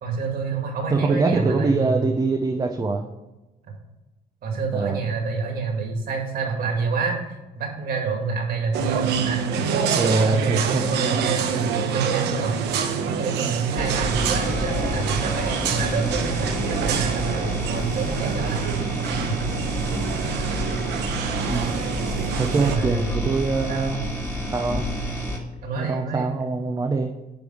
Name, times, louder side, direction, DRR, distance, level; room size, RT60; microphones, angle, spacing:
voice 1, 0.0-2.1 4.4-7.2 7.6-12.6 13.1-19.0 19.3-19.4 22.6-23.2 23.7-24.0 25.6-26.3, right 4 dB, 60° right, 2 dB, 2.2 m, -28 dB
voice 2, 0.9-3.1 4.7-5.0 9.9-10.8 21.5-21.8 22.4-24.1 24.5-24.8 25.8-27.1, right 3 dB, 25° right, 2 dB, 0.7 m, -23 dB
sound 1, 8.7-22.8, right 7 dB, 80° right, 0.9 m, -27 dB
sound 2, 13.8-25.4, equal, 15° left, 1.9 m, -29 dB
9.8 x 3.5 x 6.3 m, 1.0 s
cardioid pair, 110°, 17 cm